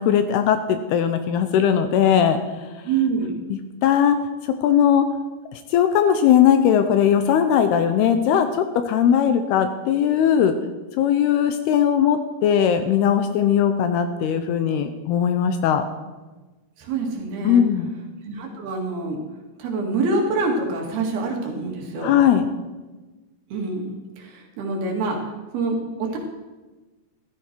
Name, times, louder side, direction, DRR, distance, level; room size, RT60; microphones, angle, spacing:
voice 1, 0.0-2.4 3.5-4.2 4.4-5.1 5.5-10.5 11.0-15.8 17.4-17.9 22.0-22.5, left 9 dB, 75° left, 8 dB, 2.6 m, -19 dB
voice 2, 2.8-3.4 16.8-17.6 18.2-19.2 19.6-22.2 23.5-25.2 25.5-26.2, right 3 dB, 65° right, 0 dB, 3.9 m, -26 dB
14.5 x 14.0 x 4.6 m, 1.2 s
omnidirectional pair, 5.0 m